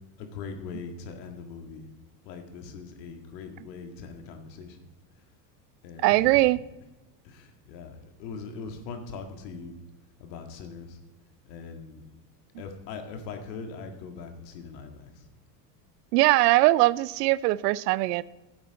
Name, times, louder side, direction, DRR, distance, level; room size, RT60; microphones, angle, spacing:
voice 1, 0.2-1.8 2.3-4.8 5.8-6.4 7.3-9.8 10.2-11.0 11.5-12.0 12.6-15.1, left 5 dB, 75° left, 5 dB, 1.9 m, -41 dB
voice 2, 6.0-6.6 16.1-18.2, right 18 dB, 70° right, 20 dB, 0.6 m, -21 dB
11.5 x 8.9 x 4.1 m, 1.1 s
hypercardioid pair, 90°, 50 cm